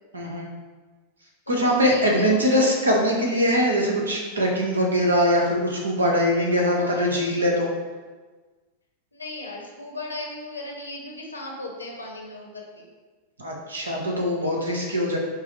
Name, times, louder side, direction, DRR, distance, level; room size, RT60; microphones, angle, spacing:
voice 1, 0.1-0.5 1.5-7.7 13.4-15.2, equal, 75° right, -1 dB, 0.9 m, -22 dB
voice 2, 1.5-2.7 6.7-7.4 9.1-12.9, left 2 dB, 80° left, -1 dB, 0.8 m, -37 dB
6.0 x 2.0 x 4.3 m, 1.3 s
figure-of-eight pair, 90°, 0 cm